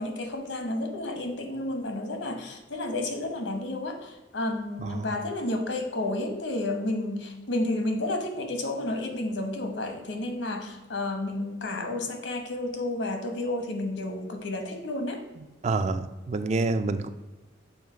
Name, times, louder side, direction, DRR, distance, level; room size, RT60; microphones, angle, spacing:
voice 1, 0.0-15.2, left 2 dB, 85° left, 5 dB, 1.0 m, -31 dB
voice 2, 15.6-17.1, right 3 dB, 35° right, 10 dB, 0.3 m, -27 dB
7.1 x 3.1 x 4.9 m, 1.1 s
head